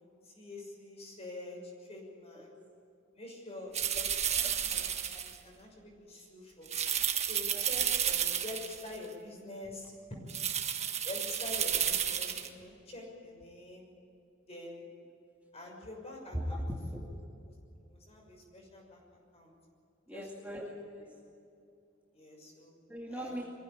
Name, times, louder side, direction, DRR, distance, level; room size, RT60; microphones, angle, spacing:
voice 1, 0.2-2.5 3.2-4.8 5.2-6.7 7.3-10.2 11.0-13.9 14.5-14.9 15.5-16.6 16.9-17.1 17.8-19.0 19.3-19.5 20.1-20.6 21.0-21.1 22.1-22.8 23.1-23.3, left 2 dB, 30° left, 0 dB, 6.3 m, -46 dB
sound 1, 3.7-5.4 6.7-9.0 10.3-12.5, right 9 dB, 35° right, 1.5 m, -32 dB
voice 2, 16.3-17.1 20.1-21.2 22.9-23.5, equal, 10° right, -3 dB, 2.3 m, -39 dB
23.5 x 16.0 x 8.7 m, 2.6 s
head